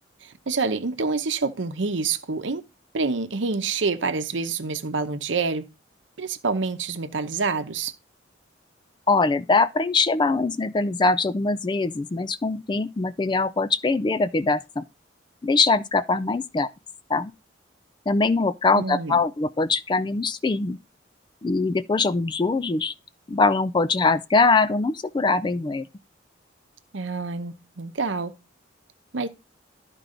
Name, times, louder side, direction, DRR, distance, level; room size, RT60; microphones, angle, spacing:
voice 1, 0.2-2.6 2.9-5.7 6.2-7.9 18.7-19.2 26.9-28.3 29.1-29.3, right 4 dB, 70° right, 0.8 m, -27 dB
voice 2, 9.1-14.8 15.4-16.7 17.1-17.3 18.1-20.8 21.4-22.9 23.3-25.9, left 3 dB, 25° left, 0.3 m, -22 dB
12.0 x 4.6 x 3.8 m
head